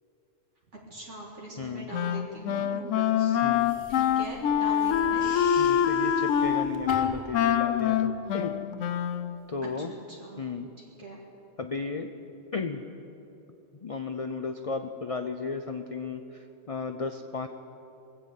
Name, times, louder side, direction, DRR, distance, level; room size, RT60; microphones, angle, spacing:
voice 1, 0.9-3.4 4.0-5.3 9.9-10.4 10.8-11.2, right 1 dB, 60° right, -3 dB, 2.1 m, -41 dB
voice 2, 1.6-1.9 3.4-3.7 5.6-8.6 9.5-9.9 10.4-10.7 11.6-12.1 12.5-12.8 13.7-17.5, left 4 dB, 55° left, 7 dB, 0.3 m, -34 dB
Wind instrument woodwind instrument, 1.9-9.4, left 9 dB, 70° left, 0.9 m, -25 dB
sound 1, 3.5-7.3, equal, 45° right, 2.9 m, -46 dB
22.0 x 7.7 x 8.2 m, 2.9 s
omnidirectional pair, 1.4 m